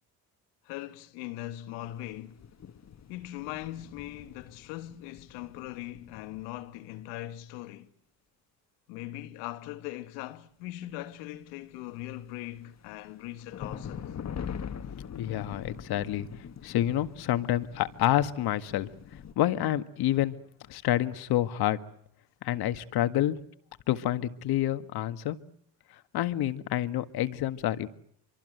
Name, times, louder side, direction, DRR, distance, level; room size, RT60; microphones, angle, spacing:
voice 1, 0.6-2.4 3.1-7.9 8.9-14.1, left 15 dB, 85° left, 1.7 m, -40 dB
sound 1, 1.8-7.0 12.0-19.3, left 7 dB, 40° left, 1.7 m, -43 dB
voice 2, 14.9-16.3 16.6-18.9 19.4-20.4 20.7-21.8 22.4-23.4 23.9-25.4 26.1-27.9, left 13 dB, 65° left, 1.9 m, -28 dB
25.5 x 25.0 x 8.0 m
supercardioid pair, 75°, 41 cm